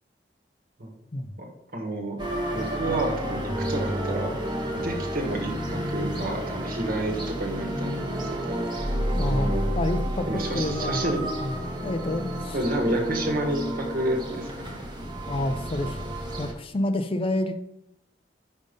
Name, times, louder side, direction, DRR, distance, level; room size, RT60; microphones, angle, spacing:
voice 1, 1.4-2.2 2.5-4.3 4.7-9.6 10.3-11.3 12.5-14.8, right 1 dB, 55° right, 1 dB, 1.4 m, -30 dB
sound 1, 2.2-16.5, equal, 25° right, 1.1 m, -30 dB
voice 2, 9.1-11.1 11.4-12.6 12.9-13.0 15.3-16.0 16.4-17.7, left 1 dB, 30° left, 9 dB, 0.4 m, -29 dB
5.4 x 5.2 x 5.3 m, 0.82 s
head